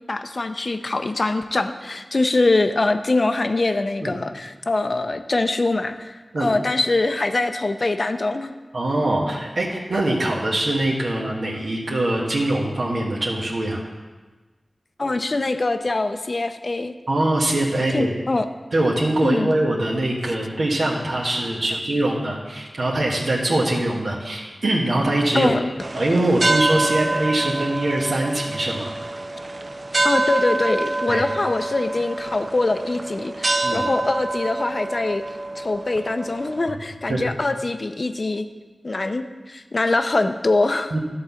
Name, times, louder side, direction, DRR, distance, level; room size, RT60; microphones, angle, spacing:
voice 1, 0.1-8.5 15.0-16.9 17.9-18.5 19.2-19.5 25.3-25.7 30.0-35.2 35.6-38.5 38.8-40.9, left 2 dB, 55° left, 9 dB, 0.6 m, -23 dB
voice 2, 8.7-13.8 17.1-18.1 18.7-25.5 25.9-28.9 31.1-31.2 33.6-33.8 37.1-37.3 40.9-41.0, right 1 dB, 80° right, -3 dB, 1.3 m, -22 dB
sound 1, 25.8-36.7, right 2 dB, 50° right, 0.5 m, -26 dB
11.5 x 3.9 x 7.0 m, 1.3 s
wide cardioid pair, 65°, 0 cm